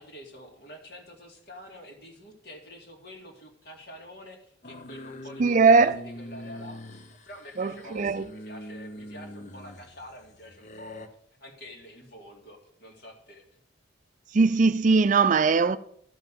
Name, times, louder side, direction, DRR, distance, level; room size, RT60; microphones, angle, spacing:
voice 1, 0.0-13.6, left 1 dB, 55° left, 2.3 m, -47 dB
sound 1, 4.6-11.1, equal, 40° left, 0.7 m, -43 dB
voice 2, 5.4-6.0 7.6-8.3 14.3-15.8, right 4 dB, 40° right, 0.4 m, -20 dB
12.0 x 5.6 x 7.5 m
head